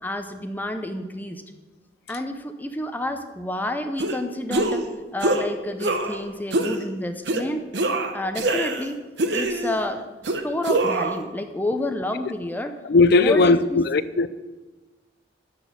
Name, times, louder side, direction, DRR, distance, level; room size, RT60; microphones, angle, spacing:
voice 1, 0.0-1.4 2.1-4.8 5.1-7.6 8.1-9.0 9.3-10.1 10.4-12.7 13.1-13.8, left 1 dB, 10° left, 0.6 m, -29 dB
sound 1, 4.0-4.2 4.5-4.9 5.2-5.5 5.8-6.2 6.5-6.8 7.3-7.4 7.7-8.9 9.2-9.8 10.2-11.2, right 2 dB, 70° right, 0.9 m, -24 dB
voice 2, 12.9-14.3, left 3 dB, 60° left, 0.4 m, -17 dB
12.0 x 4.1 x 8.1 m
head